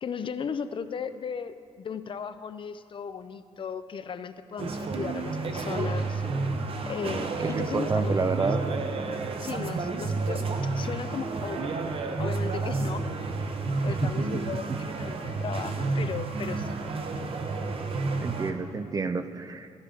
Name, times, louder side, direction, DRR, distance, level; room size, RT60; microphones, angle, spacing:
voice 1, 0.0-6.2 6.9-8.4 9.4-11.8 12.2-13.1 13.8-16.8, left 6 dB, 45° left, 12 dB, 0.4 m, -36 dB
sound 1, 4.6-18.5, right 3 dB, 50° right, 0.9 m, -30 dB
voice 2, 7.4-8.6 14.0-14.3 14.7-14.8 18.2-19.7, right 4 dB, 30° right, 10 dB, 0.5 m, -29 dB
14.5 x 12.0 x 3.8 m, 2.4 s
cardioid pair, 120°, 12 cm